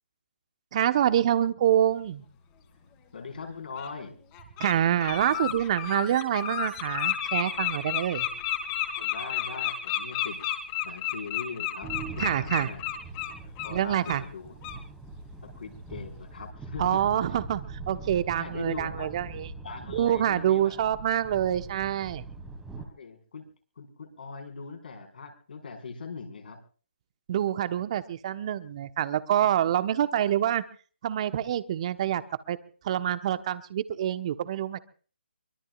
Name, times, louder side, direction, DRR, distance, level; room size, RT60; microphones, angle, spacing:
voice 1, 0.7-2.2 4.6-8.3 12.2-12.7 13.7-14.2 16.8-19.5 19.9-22.2 27.3-30.6 31.0-32.2 32.5-32.6 32.8-34.8, right 11 dB, 35° right, 11 dB, 1.2 m, -26 dB
Bird, 2.9-3.0 3.8-3.9 4.3-4.7 5.0-13.7 14.0-14.2 14.6-14.8, left 12 dB, 25° left, 3.1 m, -31 dB
voice 2, 3.1-4.2 8.9-10.4 10.8-12.8 13.6-14.6 15.4-17.0 18.4-19.1 19.6-20.8 23.0-23.5 23.8-26.6, left 5 dB, 60° left, 4 dB, 5.1 m, -40 dB
sound 1, 11.8-22.9, right 3 dB, 5° right, 2.6 m, -42 dB
24.0 x 22.5 x 2.5 m, 0.41 s
figure-of-eight pair, 145°, 6 cm